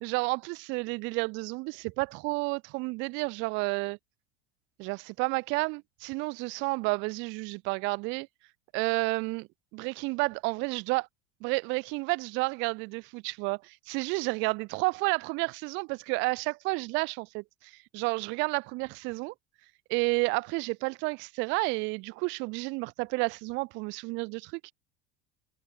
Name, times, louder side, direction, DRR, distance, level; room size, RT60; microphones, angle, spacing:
voice 1, 0.0-4.0 4.8-8.3 8.7-11.0 11.4-19.3 19.9-24.7, right 28 dB, 40° right, 0.4 m, -31 dB
figure-of-eight pair, 75°, 32 cm